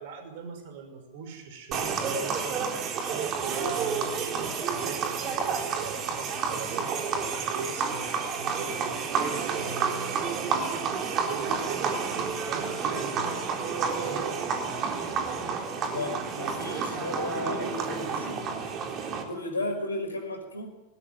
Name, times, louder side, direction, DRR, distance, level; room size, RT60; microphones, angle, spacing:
voice 1, 0.0-10.9 11.3-14.3, right 5 dB, 50° right, 6 dB, 5.6 m, -40 dB
sound 1, 1.7-19.2, right 5 dB, 35° right, 3.8 m, -30 dB
voice 2, 15.9-18.7 19.3-20.7, left 2 dB, 75° left, 5 dB, 5.4 m, -34 dB
20.5 x 20.0 x 9.4 m, 1.0 s
figure-of-eight pair, 90°, 0 cm